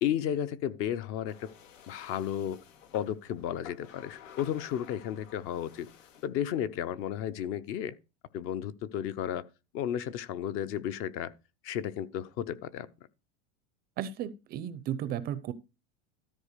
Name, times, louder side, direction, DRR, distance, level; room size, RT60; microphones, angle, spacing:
voice 1, 0.0-1.5 1.9-2.6 2.9-5.9 6.2-7.9 8.3-9.4 9.7-11.3 11.6-12.9, left 10 dB, 35° left, 0.7 m, -33 dB
sound 1, 1.2-6.3, left 9 dB, 85° left, 2.8 m, -52 dB
voice 2, 14.0-15.5, right 10 dB, 25° right, 0.6 m, -34 dB
13.5 x 4.4 x 6.6 m
supercardioid pair, 155°, 37 cm